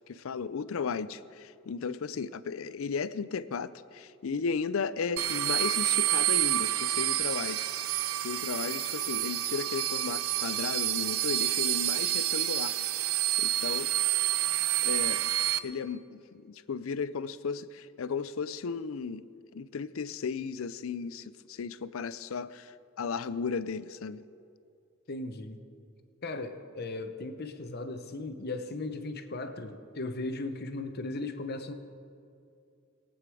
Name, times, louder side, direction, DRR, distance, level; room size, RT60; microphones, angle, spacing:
voice 1, 0.1-7.7 8.2-12.7 13.4-13.9 14.8-15.2 15.6-19.3 19.5-24.3, left 5 dB, 75° left, 16 dB, 0.5 m, -35 dB
sound 1, 5.2-15.6, right 13 dB, 85° right, 0.5 m, -28 dB
voice 2, 25.1-25.6 26.2-31.7, left 2 dB, 50° left, 8 dB, 0.9 m, -37 dB
22.0 x 8.8 x 4.8 m, 2.5 s
head